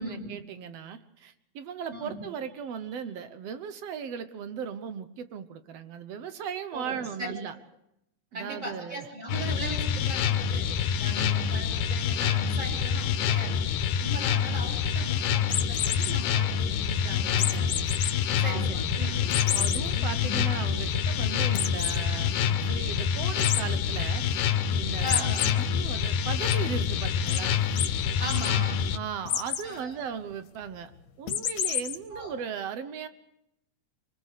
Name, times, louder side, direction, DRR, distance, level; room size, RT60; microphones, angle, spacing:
voice 1, 0.0-7.6 8.3-9.1 11.1-11.3 18.3-19.2 19.5-27.6 28.9-30.9 31.2-33.1, right 7 dB, 65° right, 11 dB, 1.6 m, -37 dB
voice 2, 6.7-7.3 8.3-13.6 14.0-17.8 18.4-20.4 25.0-25.5 28.1-28.9 29.6-29.9 32.1-32.3, right 1 dB, 30° right, 2 dB, 4.1 m, -38 dB
sound 1, 9.3-29.0, left 7 dB, 75° left, 2.6 m, -27 dB
sound 2, 15.4-16.1 17.4-18.1 18.6-18.7 19.3-19.8 20.3-20.4 20.7-20.8 21.5-22.0 23.4-23.6 25.1-25.5 25.9-26.5 27.3-27.4 27.8-27.9 28.2-28.5 29.3-29.7 31.3-32.0, left 9 dB, 60° left, 2.2 m, -29 dB
26.5 x 20.5 x 6.6 m, 0.84 s
omnidirectional pair, 3.9 m